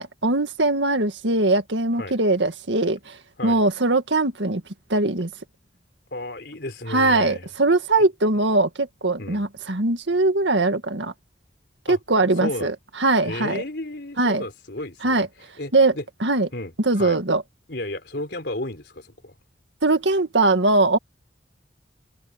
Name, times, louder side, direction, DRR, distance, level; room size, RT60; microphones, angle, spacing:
voice 1, 0.0-3.2 3.4-4.6 4.9-5.3 6.9-11.1 11.9-12.7 13.0-13.6 14.2-14.4 15.0-15.3 15.7-15.9 16.2-16.5 16.8-17.4 19.8-21.0, right 2 dB, 80° right, 1.9 m, -21 dB
voice 2, 6.1-7.5 9.2-9.5 11.9-12.0 12.4-12.7 13.2-15.3 15.6-16.0 16.5-17.2 17.7-19.3, left 1 dB, 65° left, 4.7 m, -33 dB
head